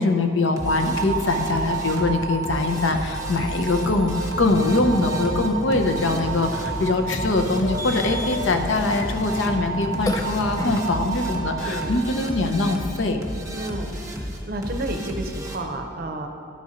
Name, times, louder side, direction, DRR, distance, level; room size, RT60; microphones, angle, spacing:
voice 1, 0.0-13.2, left 2 dB, 70° left, 5 dB, 0.7 m, -23 dB
sound 1, 0.6-12.8, right 6 dB, 40° left, 0.9 m, -33 dB
sound 2, 0.6-15.6, equal, 15° right, 0.9 m, -33 dB
Burping eructation, 4.4-10.8, left 2 dB, 20° left, 0.4 m, -33 dB
voice 2, 11.6-12.0 13.5-16.3, right 1 dB, 50° right, 4 dB, 0.6 m, -31 dB
12.0 x 4.2 x 5.0 m, 2.6 s
head